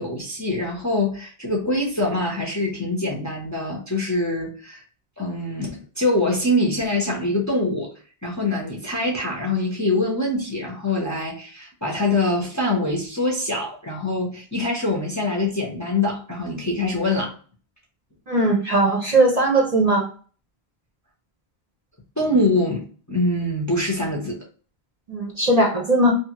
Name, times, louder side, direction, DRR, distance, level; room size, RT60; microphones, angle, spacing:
voice 1, 0.0-4.8 5.2-7.9 8.2-17.3 22.2-24.4, left 2 dB, 20° left, -1 dB, 0.6 m, -24 dB
voice 2, 18.3-20.0 25.1-26.1, right 2 dB, 45° right, -1 dB, 0.7 m, -19 dB
2.7 x 2.4 x 2.9 m, 0.40 s
omnidirectional pair, 1.1 m